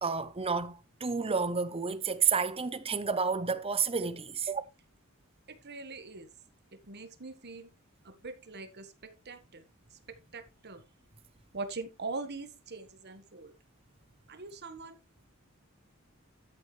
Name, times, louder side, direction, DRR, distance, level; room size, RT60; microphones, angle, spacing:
voice 1, 0.0-4.6, right 5 dB, 25° right, 0.8 m, -30 dB
voice 2, 5.5-6.3 6.8-7.7 8.0-9.6 9.9-10.0 10.3-10.8 11.5-13.5 14.3-15.0, right 3 dB, 50° right, 1.5 m, -42 dB
13.0 x 7.4 x 3.2 m
head